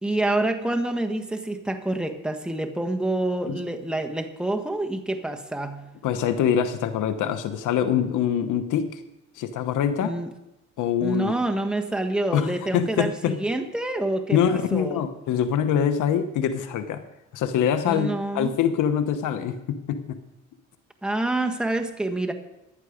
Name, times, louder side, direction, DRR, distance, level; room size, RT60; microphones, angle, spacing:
voice 1, 0.0-5.9 10.0-10.3 11.0-15.1 17.8-18.6 21.0-22.3, right 2 dB, 5° right, 4 dB, 1.5 m, -27 dB
voice 2, 6.0-9.0 9.4-10.1 10.8-11.4 12.3-13.4 14.3-17.0 17.3-20.2, left 8 dB, 85° left, 9 dB, 1.1 m, -24 dB
15.0 x 11.0 x 5.1 m, 0.92 s
cardioid pair, 90°, 30 cm